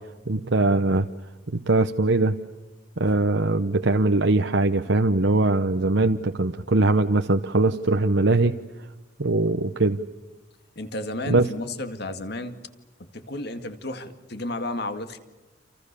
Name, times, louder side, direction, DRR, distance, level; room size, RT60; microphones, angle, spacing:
voice 1, 0.3-1.1 1.5-2.3 3.0-8.5 9.2-10.0 11.3-11.5, right 2 dB, 65° right, 6 dB, 1.0 m, -21 dB
voice 2, 10.8-12.6 13.0-15.2, left 1 dB, 55° left, 9 dB, 2.2 m, -32 dB
29.5 x 28.0 x 6.9 m, 1.1 s
head